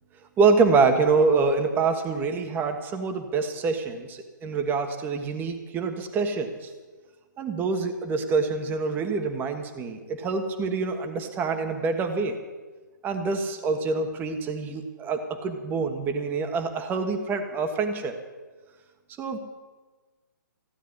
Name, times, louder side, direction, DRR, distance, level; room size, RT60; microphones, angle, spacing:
voice 1, 0.4-6.7 7.4-12.4 13.0-18.1 19.2-19.4, right 4 dB, 20° right, 7 dB, 1.4 m, -26 dB
15.5 x 9.1 x 9.8 m, 1.3 s
hypercardioid pair, 140°, 11 cm